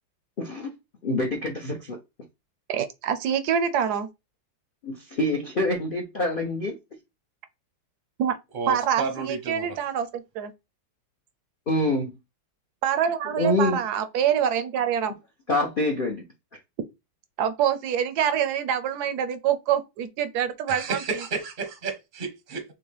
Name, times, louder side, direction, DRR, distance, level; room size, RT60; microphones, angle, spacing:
voice 1, 0.4-0.7 1.0-2.0 4.8-6.7 11.7-12.1 13.4-13.8 15.5-16.2, left 1 dB, 65° left, 0.5 m, -26 dB
voice 2, 2.7-4.1 8.2-8.4 8.7-10.5 12.8-15.1 17.4-21.0, right 9 dB, 70° right, 1.0 m, -25 dB
voice 3, 8.5-9.8 20.7-22.6, right 4 dB, 45° right, 0.6 m, -32 dB
6.0 x 2.2 x 3.2 m
omnidirectional pair, 2.0 m